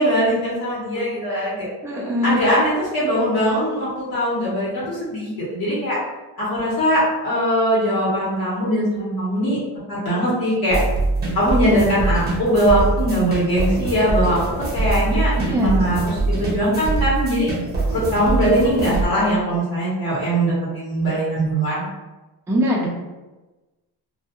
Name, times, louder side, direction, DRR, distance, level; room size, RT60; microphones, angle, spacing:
voice 1, 0.0-1.7 2.2-6.0 6.4-9.6 9.9-10.8 11.3-17.5 17.9-21.8, equal, 65° left, -8 dB, 1.1 m, -21 dB
voice 2, 0.9-1.5 1.8-2.4 15.3-16.1 22.5-22.9, equal, 5° right, -3 dB, 0.3 m, -23 dB
sound 1, 10.7-19.1, right 2 dB, 25° right, 0.8 m, -23 dB
2.3 x 2.2 x 2.9 m, 1.1 s
cardioid pair, 145°, 39 cm